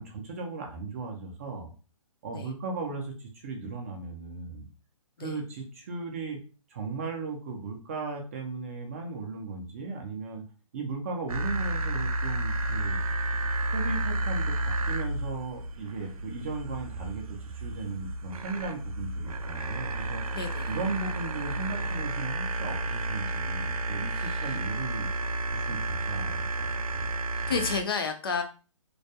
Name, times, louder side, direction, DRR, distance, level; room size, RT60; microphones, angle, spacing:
voice 1, 0.0-1.7 2.2-4.7 5.2-6.4 6.7-10.4 10.7-13.0 13.7-20.2 20.7-25.1 25.5-27.2 27.4-27.5, right 4 dB, 25° right, 2 dB, 0.4 m, -37 dB
sound 1, 11.3-27.8, right 2 dB, 85° right, 0.4 m, -31 dB
voice 2, 20.3-20.7 24.1-24.6 27.5-28.4, left 5 dB, 40° left, 6 dB, 0.4 m, -31 dB
2.2 x 2.1 x 2.7 m, 0.35 s
hypercardioid pair, 155°, 18 cm